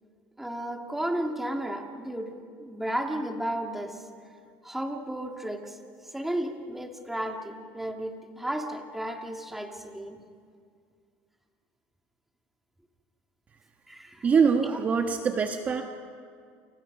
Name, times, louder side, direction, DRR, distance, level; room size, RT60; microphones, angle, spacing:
voice 1, 0.4-2.3 2.6-4.0 4.6-5.8 6.1-10.2 13.9-14.3, right 1 dB, 5° right, 3 dB, 2.4 m, -33 dB
voice 2, 14.2-15.8, right 6 dB, 30° right, 4 dB, 1.5 m, -23 dB
29.0 x 29.0 x 5.4 m, 2.2 s
cardioid pair, 125°, 5 cm